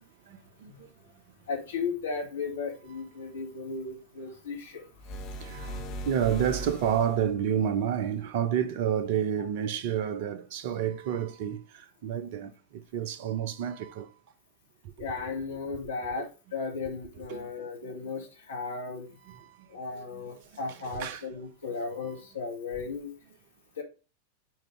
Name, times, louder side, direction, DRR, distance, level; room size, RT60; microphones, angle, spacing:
voice 1, 0.3-0.7 5.4-14.1 17.3-17.5 17.9-18.0 19.2-19.6 19.9-20.3 20.7-21.3 22.1-22.2, right 9 dB, 50° right, 0.7 m, -30 dB
voice 2, 1.5-4.8 15.0-19.1 19.7-23.1 23.8-23.9, left 4 dB, 65° left, 2.1 m, -35 dB
sound 1, 5.0-7.4, right 1 dB, 35° left, 1.5 m, -39 dB
7.6 x 4.0 x 3.4 m
figure-of-eight pair, 90°, 0 cm